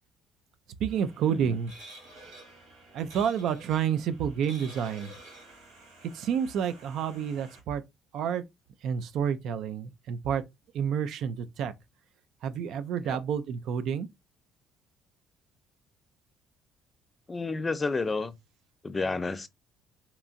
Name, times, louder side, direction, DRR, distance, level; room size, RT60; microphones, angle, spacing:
voice 1, 0.8-1.7 2.9-5.1 6.1-7.8 8.1-8.4 8.8-10.4 10.7-11.7 12.4-14.1, right 8 dB, 65° right, 0.3 m, -29 dB
sound 1, 0.9-7.6, right 2 dB, 85° right, 1.6 m, -50 dB
voice 2, 17.3-18.4 18.8-19.5, left 3 dB, 25° left, 0.4 m, -31 dB
2.8 x 2.4 x 2.4 m
hypercardioid pair, 60°, 0 cm